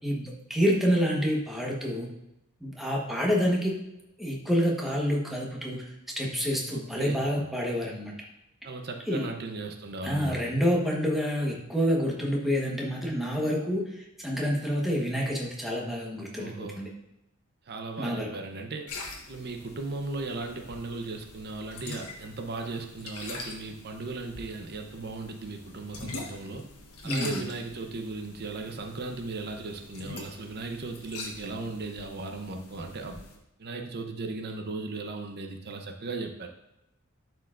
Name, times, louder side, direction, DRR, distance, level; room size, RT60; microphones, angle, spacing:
voice 1, 0.0-2.1 2.6-3.8 4.2-5.8 6.2-8.1 9.1-9.3 10.0-16.9 18.0-18.3 27.0-27.4, equal, ahead, -2 dB, 1.1 m, -28 dB
voice 2, 6.7-7.2 8.6-10.5 16.4-16.8 17.7-18.9 19.3-26.6 27.0-33.2 33.6-36.5, right 3 dB, 45° right, 4 dB, 0.7 m, -37 dB
sound 1, 18.9-33.4, left 3 dB, 80° left, 1.2 m, -44 dB
11.5 x 4.6 x 2.5 m, 0.87 s
head